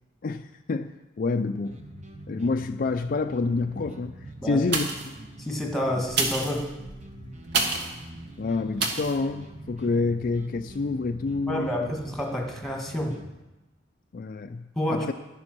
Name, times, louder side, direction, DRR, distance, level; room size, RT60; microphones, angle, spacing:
voice 1, 0.2-0.9 1.2-1.8 2.3-4.1 4.4-5.1 8.4-11.9 14.1-15.1, left 3 dB, 45° left, 7 dB, 0.4 m, -28 dB
sound 1, 1.6-13.3, right 1 dB, 35° right, 1.1 m, -43 dB
sound 2, 4.6-5.2 6.0-8.0 8.8-9.2 9.7-9.8, right 3 dB, 60° right, 1.4 m, -28 dB
voice 2, 5.4-6.7 11.5-13.2 14.8-15.1, left 1 dB, ahead, 1 dB, 1.6 m, -29 dB
10.5 x 9.7 x 6.0 m, 1.0 s
head